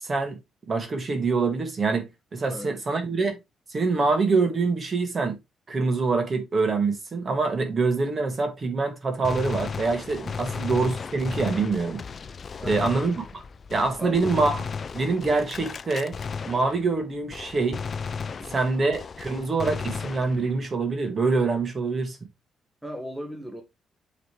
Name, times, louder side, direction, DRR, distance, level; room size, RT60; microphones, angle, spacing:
voice 1, 0.0-0.4 0.7-3.3 3.7-5.4 5.7-12.0 12.7-13.4 13.7-14.6 14.9-16.1 16.5-17.8 18.5-22.2, right 4 dB, 35° right, 2.1 m, -25 dB
Gunshot gunfire, 9.2-17.0 17.3-20.7, left 5 dB, 40° left, 0.4 m, -35 dB
voice 2, 12.6-12.9 14.0-14.4 18.4-18.7 22.8-23.6, equal, 5° right, 1.4 m, -38 dB
8.0 x 4.1 x 3.3 m
cardioid pair, 90°, 0 cm